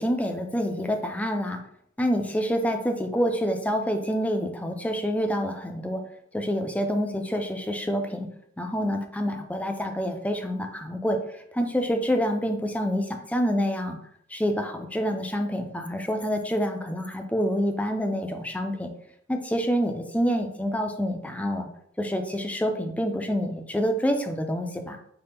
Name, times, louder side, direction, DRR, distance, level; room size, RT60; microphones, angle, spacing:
voice 1, 0.0-1.6 2.0-6.0 6.3-8.3 8.6-14.0 14.3-18.9 19.3-21.7 22.0-25.0, equal, 5° left, 4 dB, 0.4 m, -27 dB
5.5 x 2.2 x 3.4 m, 0.71 s
head